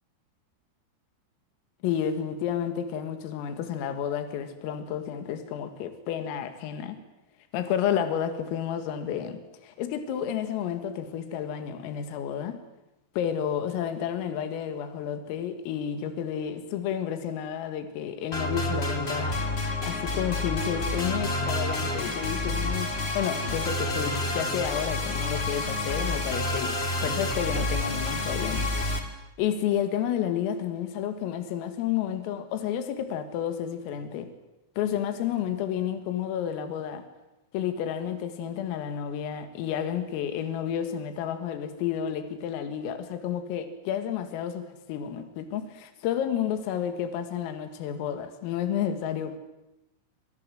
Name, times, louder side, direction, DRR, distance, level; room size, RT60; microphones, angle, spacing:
voice 1, 1.8-7.0 7.5-12.6 13.2-19.4 19.8-28.7 29.4-34.3 34.8-37.0 37.5-49.4, left 9 dB, 80° left, 8 dB, 4.6 m, -31 dB
sound 1, 18.3-29.0, left 2 dB, 20° left, 1.9 m, -29 dB
28.5 x 26.0 x 7.8 m, 0.94 s
omnidirectional pair, 6.0 m